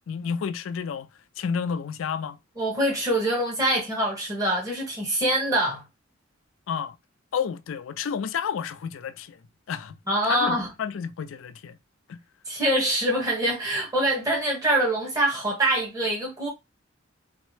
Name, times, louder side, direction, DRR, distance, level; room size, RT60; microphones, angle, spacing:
voice 1, 0.1-1.1 1.4-2.4 6.7-7.0 7.3-9.4 9.7-10.0 10.2-11.8 12.1-12.2, left 6 dB, 85° left, 0.4 m, -30 dB
voice 2, 2.6-5.8 10.1-10.7 12.5-16.5, right 1 dB, 20° right, 1.2 m, -24 dB
3.6 x 2.1 x 3.1 m
head